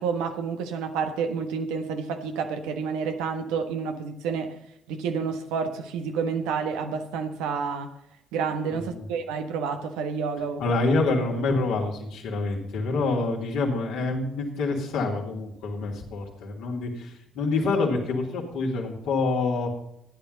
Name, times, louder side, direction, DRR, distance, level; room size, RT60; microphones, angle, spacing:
voice 1, 0.0-4.6 4.9-7.9 8.3-10.7, right 6 dB, 75° right, 6 dB, 1.2 m, -29 dB
voice 2, 8.7-9.0 10.6-19.8, left 3 dB, 70° left, -1 dB, 2.9 m, -27 dB
14.0 x 10.5 x 4.0 m, 0.77 s
hypercardioid pair, 50°, 0 cm